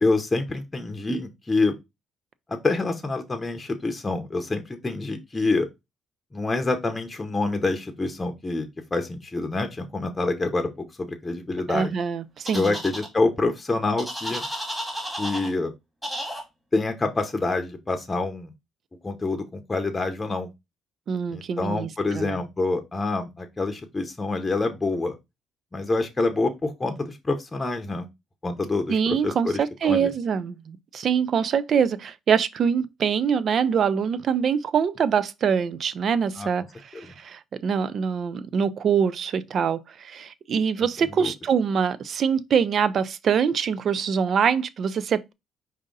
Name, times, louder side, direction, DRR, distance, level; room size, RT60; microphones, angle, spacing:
voice 1, 0.0-1.7 2.5-5.7 6.3-11.9 12.5-14.5 15.2-15.7 16.7-18.5 19.0-20.5 21.3-25.2 25.7-28.1 28.4-30.1 36.4-36.5 36.9-37.0 41.0-41.3, left 3 dB, 20° left, 0.8 m, -26 dB
voice 2, 11.7-12.8 21.1-22.4 28.9-36.6 36.9-45.3, right 7 dB, 55° right, 0.4 m, -24 dB
sound 1, 12.5-13.1 14.0-15.5 16.0-16.4, equal, 5° right, 1.9 m, -32 dB
5.0 x 2.7 x 3.8 m
cardioid pair, 95°, 0 cm